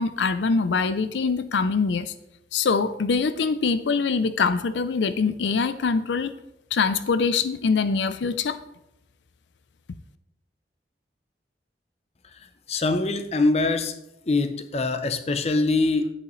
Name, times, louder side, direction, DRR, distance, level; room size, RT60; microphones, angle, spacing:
voice 1, 0.0-2.1 2.5-6.3 6.7-8.6, left 4 dB, 85° left, 12 dB, 0.5 m, -23 dB
voice 2, 12.7-13.9 14.3-16.1, left 3 dB, 35° left, 9 dB, 0.6 m, -23 dB
11.0 x 8.3 x 3.1 m, 0.85 s
head